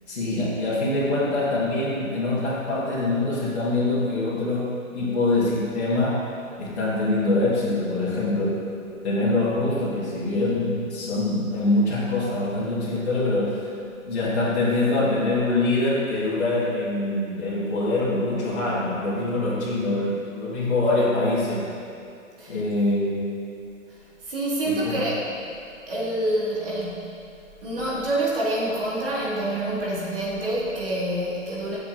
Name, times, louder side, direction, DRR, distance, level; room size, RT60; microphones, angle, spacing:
voice 1, 0.1-6.2 6.6-8.6 9.0-13.7 14.0-21.7 22.5-23.3 24.7-25.0, left 2 dB, 55° left, -10 dB, 2.1 m, -24 dB
voice 2, 24.2-25.3 25.9-27.2 27.6-31.8, right 1 dB, 45° right, -6 dB, 2.2 m, -27 dB
13.5 x 7.1 x 2.7 m, 2.5 s
hypercardioid pair, 180°, 41 cm